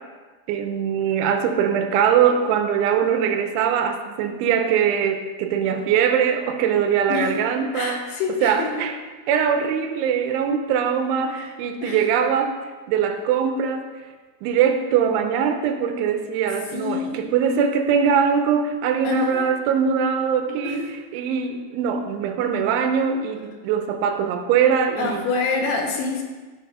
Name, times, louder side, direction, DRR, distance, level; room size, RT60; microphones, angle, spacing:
voice 1, 0.5-8.0 8.4-9.0 9.3-12.6 12.9-13.9 14.4-25.3, right 7 dB, 85° right, 7 dB, 3.1 m, -22 dB
voice 2, 7.7-8.8 11.3-11.5 11.8-12.1 16.7-17.2 19.0-19.5 20.6-20.9 25.0-26.2, left 4 dB, 70° left, 1 dB, 3.1 m, -27 dB
15.5 x 6.6 x 5.0 m, 1.4 s
omnidirectional pair, 5.6 m